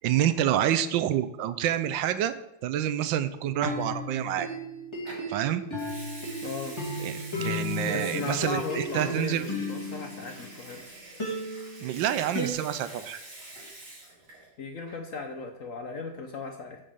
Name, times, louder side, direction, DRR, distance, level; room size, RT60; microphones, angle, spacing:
voice 1, 0.0-2.3 2.6-4.5 5.3-5.6 7.0-9.5 11.8-13.2, right 11 dB, 75° right, 12 dB, 1.3 m, -27 dB
sound 1, 3.5-10.7 11.2-12.5, left 1 dB, 15° left, 2.4 m, -34 dB
Water tap faucet / Sink (filling or washing) / Liquid, 5.1-5.3 5.7-14.5 14.8-15.1, right 2 dB, 60° right, 3.4 m, -46 dB
voice 2, 6.4-6.8 7.9-10.8 14.6-16.8, left 4 dB, 55° left, 4 dB, 1.0 m, -37 dB
7.2 x 5.3 x 7.0 m, 0.83 s
omnidirectional pair, 2.1 m